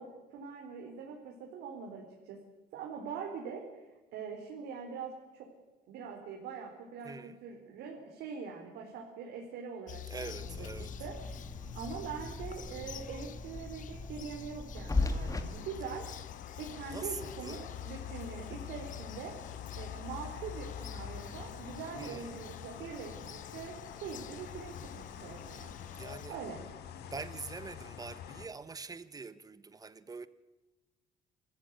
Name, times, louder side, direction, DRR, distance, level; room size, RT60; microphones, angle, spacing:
voice 1, 0.0-2.4 2.7-3.6 4.1-5.5 5.9-10.7 11.0-11.5 11.7-16.1 16.6-19.3 19.7-25.7 26.3-26.6, right 6 dB, 80° right, 3.9 m, -43 dB
voice 2, 7.0-7.4 10.1-11.0 16.9-17.6 22.0-22.3 26.0-26.4 27.1-30.3, right 4 dB, 20° right, 1.3 m, -44 dB
Bird vocalization bird call bird song, 9.9-26.3, left 9 dB, 50° left, 0.7 m, -47 dB
sound 1, 10.4-15.4, left 3 dB, 20° left, 2.0 m, -37 dB
sound 2, 14.9-28.5, left 8 dB, 75° left, 2.3 m, -47 dB
25.5 x 14.5 x 9.1 m
cardioid pair, 110°, 17 cm